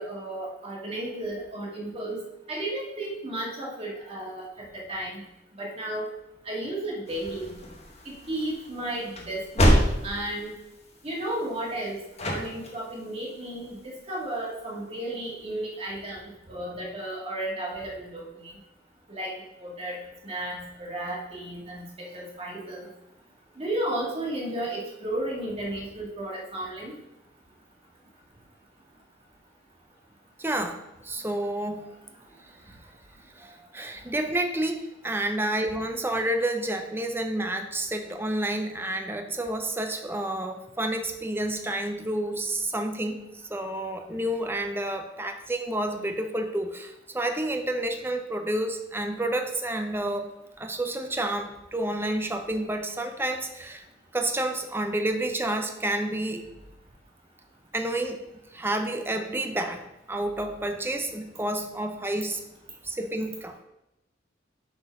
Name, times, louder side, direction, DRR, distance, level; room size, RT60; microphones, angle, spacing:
voice 1, 0.0-2.2 2.5-4.5 4.9-5.2 5.6-6.1 6.4-7.6 8.1-10.5 11.0-12.0 12.2-18.5 19.1-19.3 19.6-20.0 20.2-22.9 23.6-26.9, right 1 dB, 30° right, -3 dB, 2.0 m, -33 dB
sound 1, 7.1-14.4, equal, 35° left, 1.3 m, -29 dB
voice 2, 30.4-32.0 33.4-50.3 50.6-53.8 54.1-56.5 57.7-58.2 58.5-59.8 60.1-62.4 62.8-63.6, right 1 dB, 10° right, 6 dB, 0.6 m, -29 dB
7.8 x 4.4 x 5.2 m, 0.91 s
head